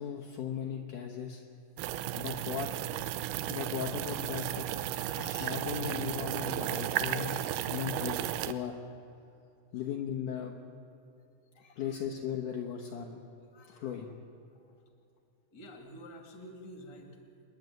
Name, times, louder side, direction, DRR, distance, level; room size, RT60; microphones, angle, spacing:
voice 1, 0.0-1.4 2.2-2.8 3.5-4.7 5.3-8.2 8.5-8.8 9.7-10.6 11.6-13.2 13.7-14.2, left 8 dB, 75° left, 1 dB, 1.9 m, -37 dB
sound 1, 1.8-8.5, right 13 dB, 90° right, 2.1 m, -34 dB
voice 2, 4.9-5.5 11.5-12.0 13.5-14.0 15.5-17.2, left 1 dB, 30° left, 3 dB, 2.3 m, -50 dB
27.0 x 10.5 x 9.3 m, 2.6 s
omnidirectional pair, 5.2 m